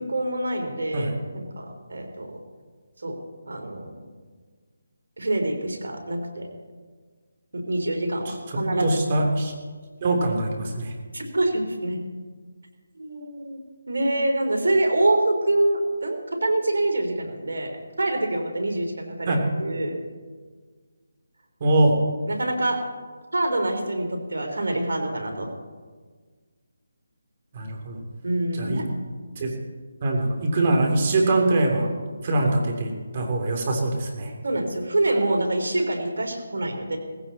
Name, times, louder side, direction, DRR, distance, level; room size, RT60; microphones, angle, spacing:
voice 1, 0.0-2.3 3.0-3.2 3.5-4.1 5.2-6.5 7.5-9.0 11.1-12.0 12.9-20.0 22.3-22.8 23.3-25.5 28.2-28.9 34.4-37.0, right 1 dB, 75° right, 3 dB, 3.9 m, -26 dB
voice 2, 8.8-9.5 10.0-10.9 19.3-19.4 21.6-21.9 27.5-28.0 28.6-28.8 29.4-29.5 30.0-31.9 32.2-34.3, right 2 dB, 35° right, 2 dB, 3.2 m, -23 dB
18.5 x 15.5 x 4.2 m, 1.5 s
figure-of-eight pair, 165°, 0 cm